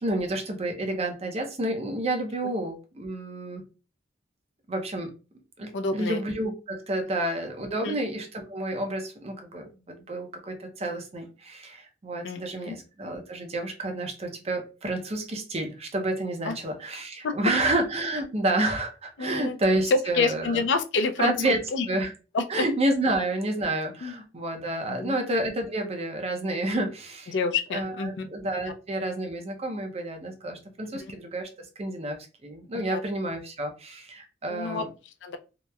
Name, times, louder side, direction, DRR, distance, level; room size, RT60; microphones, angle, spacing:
voice 1, 0.0-3.6 4.7-5.1 5.6-20.6 21.2-21.6 21.9-22.1 22.5-27.4 27.7-31.5 31.8-34.9, right 1 dB, 35° right, 4 dB, 0.5 m, -29 dB
voice 2, 5.7-6.2 7.8-8.0 12.2-12.8 16.4-16.6 17.2-17.3 19.2-19.5 19.9-21.9 22.3-22.6 24.0-24.1 24.9-25.2 27.3-28.3 30.9-31.1 32.9-33.0 34.5-34.8 35.2-35.4, left 4 dB, 70° left, 7 dB, 0.4 m, -28 dB
2.8 x 2.0 x 2.2 m, 0.32 s
head